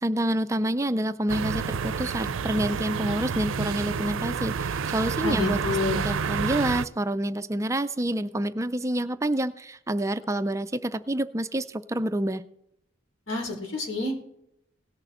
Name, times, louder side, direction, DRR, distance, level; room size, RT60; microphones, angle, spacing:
voice 1, 0.0-12.4, right 1 dB, 15° right, 12 dB, 0.4 m, -28 dB
sound 1, 1.3-6.9, right 6 dB, 85° right, 0.5 m, -29 dB
voice 2, 5.2-6.0 13.3-14.2, left 2 dB, 85° left, 1 dB, 3.9 m, -28 dB
17.5 x 6.6 x 4.2 m, 0.75 s
head